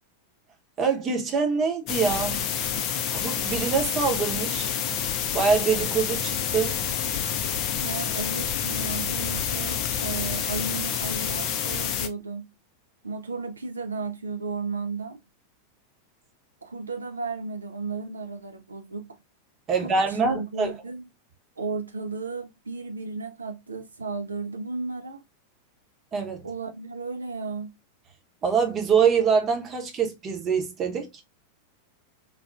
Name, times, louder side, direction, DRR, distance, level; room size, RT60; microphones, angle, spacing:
voice 1, 0.8-2.4 3.1-4.7 5.3-6.8 19.7-20.7 26.1-26.5 28.4-31.1, right 5 dB, 30° right, 0.8 m, -24 dB
sound 1, 1.9-12.1, left 8 dB, 40° left, 0.5 m, -28 dB
voice 2, 7.8-12.5 13.0-15.2 16.6-19.2 19.8-21.0 21.6-25.2 26.4-27.8, right 4 dB, 75° right, 0.3 m, -34 dB
3.9 x 2.2 x 2.2 m
figure-of-eight pair, 90°, 0 cm